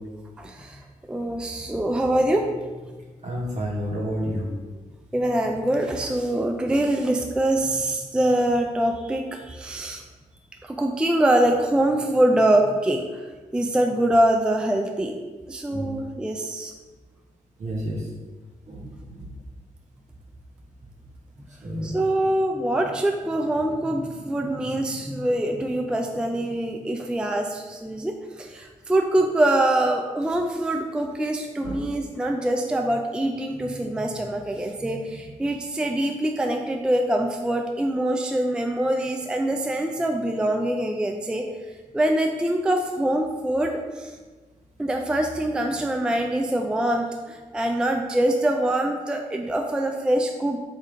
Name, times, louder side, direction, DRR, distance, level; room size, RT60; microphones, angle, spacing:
voice 1, 0.4-0.8 1.1-2.5 5.1-10.0 10.6-13.2 13.5-15.1 15.5-16.7 21.8-41.4 41.9-44.1 44.8-50.6, right 1 dB, 5° right, 3 dB, 0.3 m, -24 dB
voice 2, 3.2-4.6 15.7-15.9 17.6-18.1 18.7-19.3 21.6-22.0 31.6-31.8, equal, 60° right, -3 dB, 1.2 m, -30 dB
3.4 x 2.7 x 3.6 m, 1.3 s
supercardioid pair, 55°, 14 cm